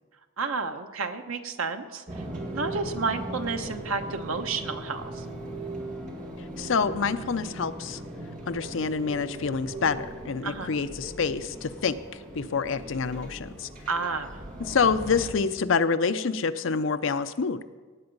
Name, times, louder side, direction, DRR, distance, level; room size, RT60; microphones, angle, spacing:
voice 1, 0.4-2.2 2.5-5.2 10.4-10.8 13.9-14.3, right 4 dB, 80° right, 7 dB, 1.0 m, -31 dB
sound 1, 2.1-15.3, right 1 dB, 35° right, 2.1 m, -39 dB
voice 2, 6.6-8.0 8.5-12.0 12.3-13.7 14.6-17.6, left 5 dB, 65° left, 11 dB, 0.5 m, -27 dB
18.0 x 7.9 x 5.3 m, 1.5 s
head